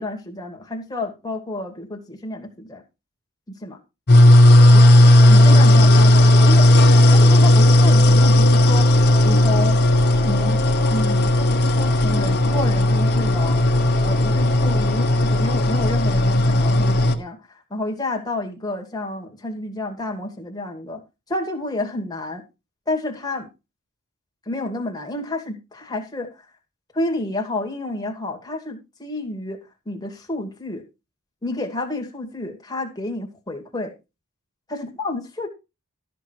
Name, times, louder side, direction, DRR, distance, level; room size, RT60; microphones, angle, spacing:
voice 1, 0.0-2.8 3.6-3.8 4.7-4.9 5.3-6.7 6.9-9.8 10.1-10.6 10.9-13.6 14.0-17.4 17.7-21.0 21.3-22.4 22.9-23.5 24.5-26.3 26.9-29.6 29.9-30.8 31.4-33.9 34.7-35.5, left 2 dB, 20° left, 2.3 m, -30 dB
sound 1, 4.1-17.1, left 1 dB, 50° left, 1.5 m, -14 dB
13.0 x 6.6 x 4.5 m
head